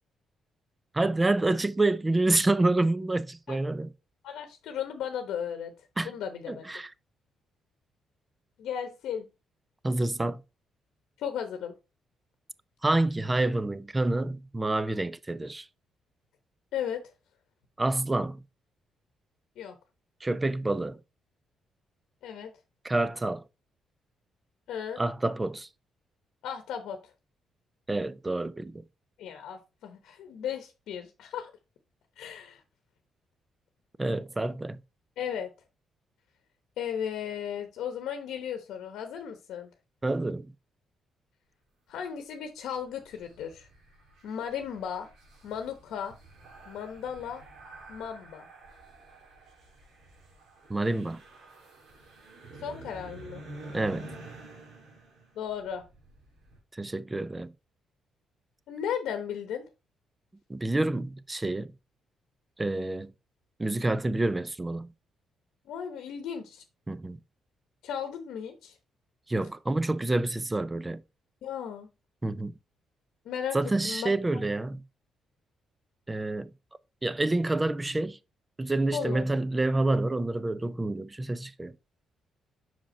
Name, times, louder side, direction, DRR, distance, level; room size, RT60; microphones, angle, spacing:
voice 1, 0.9-3.9 6.0-6.1 6.5-6.9 9.8-10.4 12.8-15.7 17.8-18.4 20.2-21.0 22.8-23.4 25.0-25.7 27.9-28.8 34.0-34.8 40.0-40.5 50.7-51.2 53.7-54.1 56.7-57.5 60.5-61.7 62.6-63.1 63.6-64.9 66.9-67.2 69.3-71.0 72.2-72.5 73.5-74.8 76.1-76.5 77.0-78.2 78.6-81.7, right 2 dB, 20° right, 0.5 m, -28 dB
voice 2, 4.2-5.7 6.0-6.6 8.6-9.2 11.2-11.7 16.7-17.0 19.6-19.7 22.2-22.5 24.7-25.0 26.4-27.0 29.2-31.5 32.2-32.6 35.2-35.5 36.8-39.7 41.9-43.7 44.2-45.1 45.4-46.1 46.7-47.4 47.9-48.5 52.6-53.4 55.4-55.8 58.7-59.7 65.7-66.6 67.8-68.7 71.4-71.9 73.2-73.6 73.8-74.1 78.9-79.2, left 8 dB, 80° left, 0.9 m, -35 dB
sound 1, 42.7-56.6, right 2 dB, 80° right, 3.2 m, -49 dB
5.8 x 5.0 x 4.2 m
cardioid pair, 90°, 0 cm